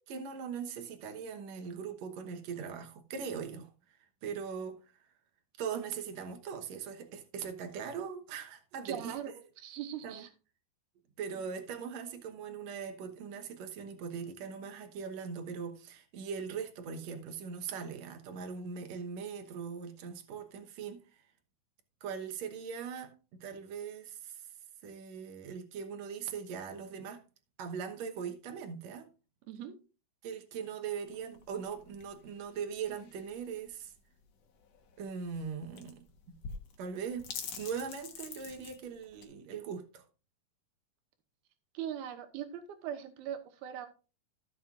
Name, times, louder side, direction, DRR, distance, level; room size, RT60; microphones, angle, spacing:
voice 1, 0.0-3.7 4.2-4.8 5.6-9.2 10.0-10.3 11.2-21.2 22.0-24.4 24.8-27.2 27.6-29.1 30.2-33.9 35.0-36.4 36.8-37.3 37.6-40.0, right 6 dB, 65° right, 1.8 m, -40 dB
voice 2, 8.9-9.3 9.6-10.3 29.5-29.8 41.7-43.9, right 10 dB, 90° right, 2.9 m, -40 dB
sound 1, 31.1-39.3, left 6 dB, 60° left, 1.9 m, -47 dB
15.0 x 7.4 x 2.5 m
omnidirectional pair, 4.4 m